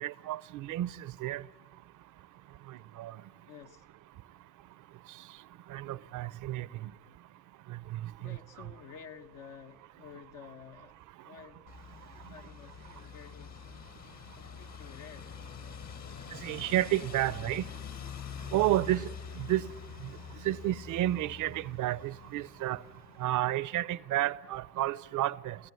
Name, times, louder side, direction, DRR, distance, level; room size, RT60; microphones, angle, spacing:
voice 1, 0.0-1.4 3.0-3.1 5.7-6.7 7.9-8.4 16.4-17.6 18.5-19.1 19.4-19.7 20.4-22.8 23.2-25.6, right 14 dB, 85° right, 0.7 m, -31 dB
voice 2, 3.5-3.9 6.7-7.0 8.2-11.7 12.3-13.7 14.4-15.4 18.9-19.0, left 7 dB, 90° left, 1.1 m, -51 dB
sound 1, 11.7-23.4, left 7 dB, 65° left, 1.5 m, -45 dB
28.5 x 15.0 x 9.5 m
cardioid pair, 90°, 30 cm